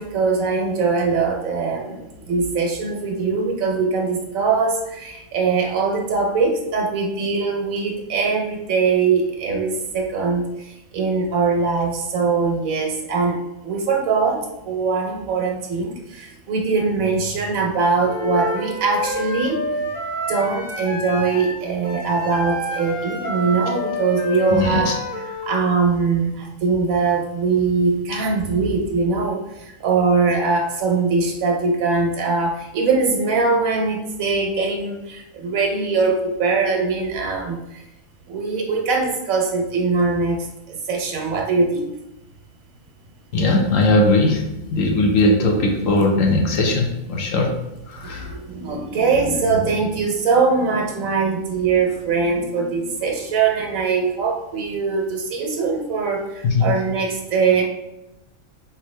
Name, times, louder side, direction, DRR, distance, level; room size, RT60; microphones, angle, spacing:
voice 1, 0.0-13.4 13.6-19.6 20.3-24.9 25.4-37.8 38.3-41.9 48.0-57.6, right 4 dB, 90° right, 1 dB, 1.3 m, -22 dB
Wind instrument woodwind instrument, 18.0-25.5, left 1 dB, 10° right, 0.9 m, -28 dB
voice 2, 24.5-24.9 43.3-47.6 47.9-48.3 56.4-56.7, left 2 dB, 75° left, 1 dB, 1.3 m, -19 dB
4.4 x 3.6 x 3.2 m, 0.94 s
omnidirectional pair, 1.4 m